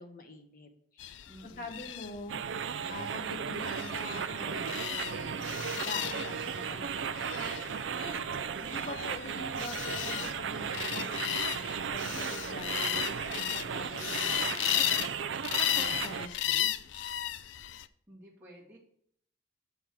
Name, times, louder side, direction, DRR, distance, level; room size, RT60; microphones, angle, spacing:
voice 1, 0.0-8.3 8.6-15.0 15.7-16.7, left 1 dB, 50° left, 5 dB, 1.2 m, -45 dB
sound 1, 1.0-17.9, left 12 dB, 85° left, 0.4 m, -35 dB
voice 2, 1.3-1.9 8.3-8.9 18.1-18.8, right 1 dB, 15° right, -6 dB, 2.0 m, -52 dB
sound 2, 2.3-16.3, right 7 dB, 80° right, 0.4 m, -36 dB
8.6 x 6.4 x 4.5 m, 0.65 s
head